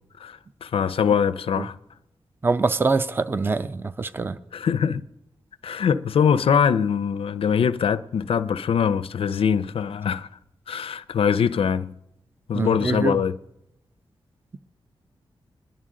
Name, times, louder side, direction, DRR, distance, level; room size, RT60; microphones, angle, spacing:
voice 1, 0.2-1.7 4.5-5.0 5.6-10.3 10.7-11.9 12.5-13.4, left 7 dB, 75° left, 0.4 m, -23 dB
voice 2, 2.4-4.3 12.5-13.2, right 3 dB, 20° right, 0.4 m, -24 dB
21.0 x 11.0 x 3.7 m
wide cardioid pair, 130°, 10 cm